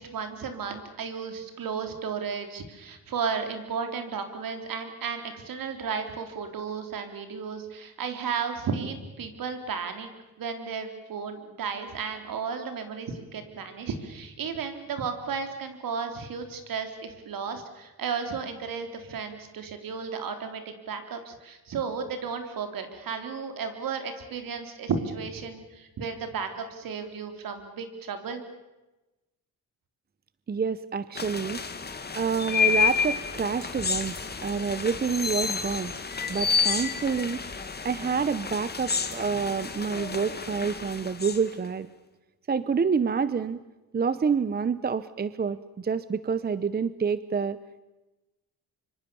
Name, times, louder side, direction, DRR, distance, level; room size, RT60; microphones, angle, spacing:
voice 1, 0.0-10.1 10.4-28.4, right 6 dB, 65° right, 7 dB, 3.8 m, -34 dB
voice 2, 30.5-31.6 32.1-34.2 34.4-35.9 36.3-37.4 37.8-41.9 42.5-43.6 43.9-47.6, right 6 dB, 25° right, 16 dB, 0.8 m, -28 dB
sound 1, 31.2-41.7, left 6 dB, 25° left, 2.3 m, -30 dB
25.0 x 25.0 x 7.1 m, 1.1 s
cardioid pair, 105°, 36 cm